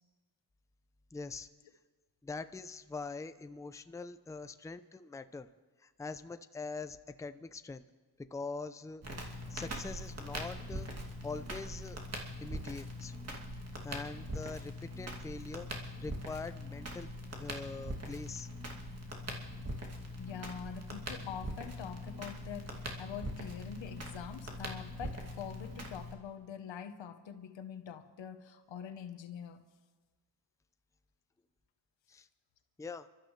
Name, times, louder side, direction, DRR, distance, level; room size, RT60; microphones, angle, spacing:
voice 1, 1.1-1.5 2.2-5.5 5.8-7.8 8.3-10.9 11.2-12.0 12.4-13.1 13.8-15.7 16.0-17.1 17.4-18.5 32.1-32.3 32.8-33.1, left 4 dB, 5° left, 11 dB, 0.5 m, -43 dB
Crackle, 9.0-26.1, equal, 35° right, 2.6 m, -42 dB
voice 2, 20.2-29.6, left 8 dB, 90° left, 9 dB, 1.2 m, -45 dB
27.5 x 13.0 x 3.3 m, 1.3 s
cardioid pair, 95°, 44 cm